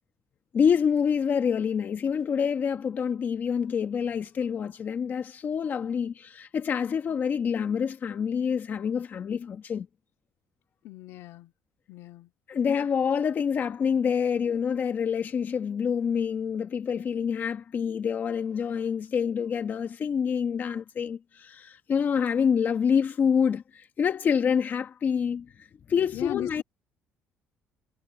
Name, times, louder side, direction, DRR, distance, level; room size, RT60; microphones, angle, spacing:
voice 1, 0.5-9.9 12.5-26.6, left 7 dB, 45° left, 1.3 m, -27 dB
voice 2, 10.8-11.5 11.9-12.3 26.1-26.6, left 14 dB, 80° left, 2.4 m, -37 dB
cardioid pair, 110°, 4 cm